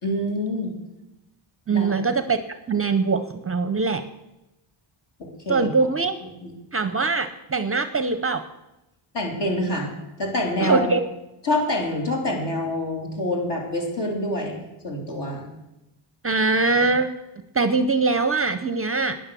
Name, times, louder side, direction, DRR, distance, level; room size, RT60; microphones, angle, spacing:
voice 1, 0.0-0.7 1.7-2.0 5.2-5.7 6.4-6.5 9.1-9.9 10.2-10.9 11.4-15.5, left 1 dB, 55° left, -1 dB, 3.4 m, -26 dB
voice 2, 1.7-2.4 2.7-4.0 5.5-6.1 6.7-8.4 10.6-11.0 16.2-17.1 17.5-19.2, right 4 dB, 30° right, 10 dB, 0.6 m, -22 dB
11.5 x 9.8 x 6.9 m, 0.95 s
wide cardioid pair, 155°, 49 cm